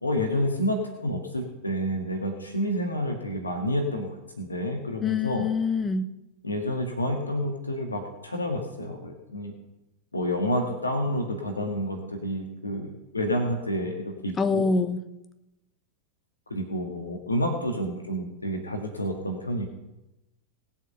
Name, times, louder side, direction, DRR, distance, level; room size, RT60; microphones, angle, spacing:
voice 1, 0.0-5.5 6.4-9.5 10.1-14.6 16.5-19.6, equal, 80° left, 3 dB, 1.8 m, -29 dB
voice 2, 5.0-6.1 14.4-15.0, left 4 dB, 20° left, 10 dB, 1.0 m, -25 dB
19.5 x 7.4 x 5.8 m, 0.95 s
figure-of-eight pair, 90°, 0 cm